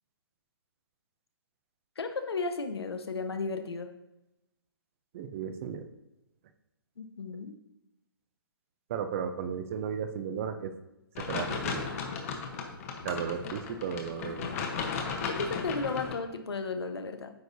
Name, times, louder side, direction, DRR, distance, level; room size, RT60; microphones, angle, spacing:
voice 1, 2.0-3.9 7.0-7.6 15.2-17.3, left 4 dB, 90° left, 7 dB, 1.0 m, -34 dB
voice 2, 5.1-5.8 8.9-10.7 11.2-11.9 13.0-14.5, right 7 dB, 30° right, 9 dB, 0.5 m, -35 dB
sound 1, 11.1-16.1, left 5 dB, 35° left, 1.0 m, -35 dB
9.3 x 6.3 x 2.7 m, 0.91 s
hypercardioid pair, 155°, 13 cm